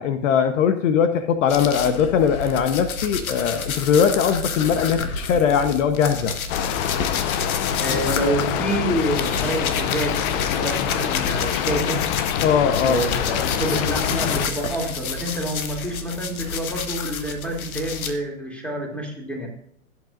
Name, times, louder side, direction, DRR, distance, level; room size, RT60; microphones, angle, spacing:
voice 1, 0.0-6.3 12.4-13.0, left 7 dB, 65° left, 9 dB, 1.1 m, -20 dB
sound 1, 1.5-12.4 12.7-18.1, left 5 dB, 90° left, 1.4 m, -30 dB
Rain, 6.5-14.5, left 10 dB, 45° left, 0.7 m, -26 dB
voice 2, 7.8-12.0 12.8-19.5, right 1 dB, 5° left, 0 dB, 2.9 m, -27 dB
16.0 x 7.9 x 2.6 m, 0.66 s
hypercardioid pair, 125°, 42 cm